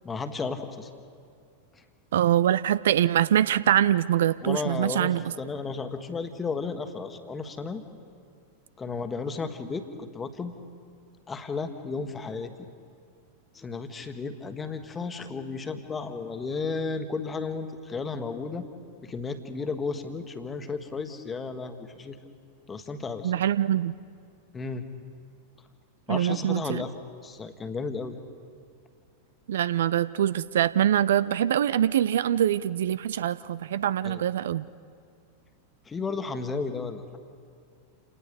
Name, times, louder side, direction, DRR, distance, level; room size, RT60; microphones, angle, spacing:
voice 1, 0.0-0.9 1.7-1.8 4.4-7.8 8.8-10.5 11.3-12.5 13.5-18.6 19.0-22.2 22.7-23.3 24.5-24.9 26.1-26.9 27.2-28.2 34.0-34.2 35.9-37.2, left 4 dB, 15° left, 8 dB, 1.5 m, -33 dB
voice 2, 2.1-5.2 23.2-23.9 26.1-26.8 29.5-34.6, right 11 dB, 60° right, 17 dB, 0.4 m, -24 dB
28.5 x 19.0 x 5.3 m, 2.2 s
figure-of-eight pair, 90°, 0 cm